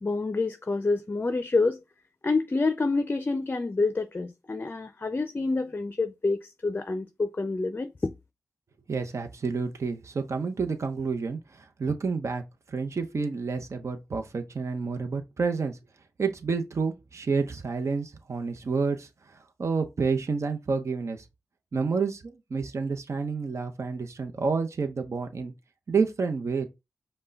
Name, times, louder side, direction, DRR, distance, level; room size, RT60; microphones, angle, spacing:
voice 1, 0.0-1.8 2.2-8.1, left 3 dB, 35° left, 0.5 m, -27 dB
voice 2, 8.9-12.4 12.7-15.8 16.2-21.2 21.7-25.5 25.9-26.7, right 4 dB, 60° right, 0.7 m, -29 dB
5.4 x 2.2 x 3.9 m
cardioid pair, 50°, 6 cm